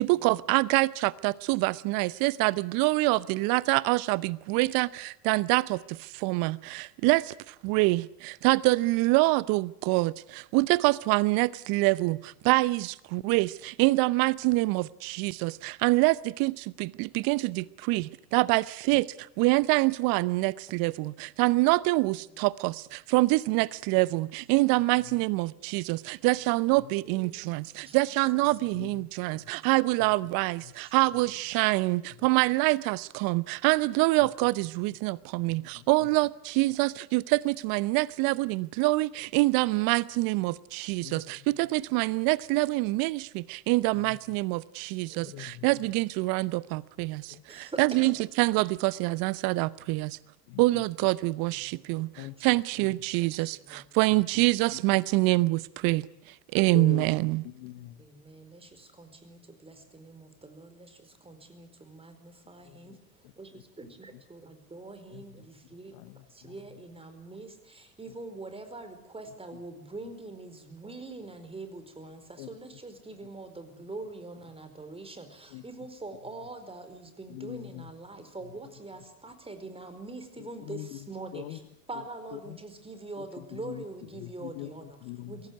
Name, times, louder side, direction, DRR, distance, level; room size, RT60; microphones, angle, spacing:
voice 1, 0.0-50.2 50.6-56.1 56.5-57.4, right 22 dB, 50° right, 0.9 m, -26 dB
voice 2, 27.0-28.0 29.3-29.6 30.8-30.9 45.1-45.5 47.5-48.2 48.9-49.1 51.7-52.5 53.2-53.9 58.0-63.0 63.4-66.0 66.3-81.6 81.9-84.9 85.3-85.5, right 2 dB, 10° right, 4.6 m, -44 dB
voice 3, 28.6-29.5 30.0-30.1 30.6-30.7 32.2-32.3 34.2-34.3 35.4-36.1 41.0-41.5 43.9-44.2 45.2-45.9 47.3-47.4 50.5-50.8 52.1-52.9 54.1-54.4 54.7-54.8 56.7-58.0 62.6-63.0 63.2-63.6 64.1-64.2 65.1-66.8 70.0-70.1 72.4-72.6 75.5-75.6 77.3-77.9 78.4-78.5 80.4-81.6 81.9-82.0 82.3-82.6 83.2-83.8 84.1-85.4, left 18 dB, 55° left, 1.2 m, -44 dB
23.5 x 17.5 x 9.5 m
hypercardioid pair, 80°, 45 cm